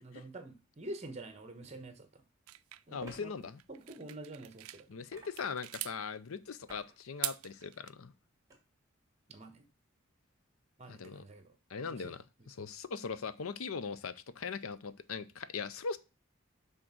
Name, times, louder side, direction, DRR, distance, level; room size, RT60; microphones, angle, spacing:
voice 1, 0.0-2.2 2.9-5.1 9.3-9.6 10.8-11.5 11.8-12.2, right 1 dB, 30° right, 1.1 m, -47 dB
sound 1, 1.5-1.6 3.0-3.2 5.1-5.6 6.7-6.9 7.4-7.7 8.5-8.6, right 1 dB, 15° right, 1.8 m, -52 dB
sound 2, 2.5-4.8 5.2-6.0 7.0-7.9, right 17 dB, 90° right, 0.4 m, -42 dB
voice 2, 2.9-3.6 4.9-8.1 10.9-11.2 11.7-16.0, left 5 dB, 85° left, 0.6 m, -40 dB
6.3 x 3.8 x 6.1 m
head